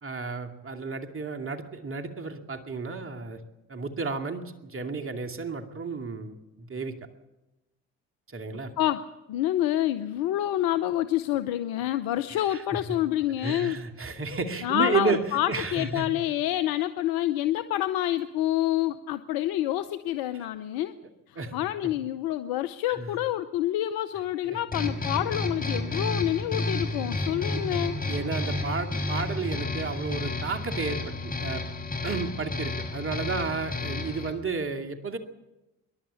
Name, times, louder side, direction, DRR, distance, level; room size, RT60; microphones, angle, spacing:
voice 1, 0.0-3.4 3.7-7.0 8.3-8.7 12.3-12.8 13.4-15.2 15.5-16.1 21.4-21.9 23.0-23.2 24.5-24.6 25.9-26.1 27.0-27.2 27.5-27.6 28.1-31.7 32.0-35.2, right 4 dB, 35° right, 5 dB, 2.4 m, -32 dB
voice 2, 8.8-13.8 14.6-21.0 21.3-28.0, left 13 dB, 70° left, 10 dB, 0.8 m, -27 dB
sound 1, 24.7-34.3, left 2 dB, 25° left, 5.8 m, -31 dB
27.0 x 11.5 x 8.5 m, 1.0 s
hypercardioid pair, 45°, 37 cm